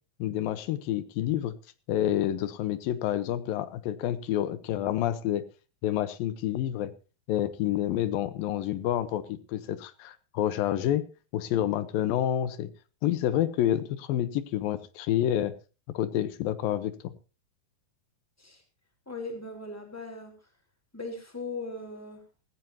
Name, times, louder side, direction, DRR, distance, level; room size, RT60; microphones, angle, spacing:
voice 1, 0.2-1.6 1.9-5.4 5.8-6.9 7.3-11.0 11.3-12.7 13.0-15.5 15.9-17.1, left 12 dB, 90° left, 14 dB, 2.8 m, -28 dB
voice 2, 19.1-20.3 20.9-22.2, left 3 dB, 5° left, 3 dB, 3.7 m, -38 dB
17.5 x 15.0 x 2.8 m, 0.34 s
omnidirectional pair, 4.0 m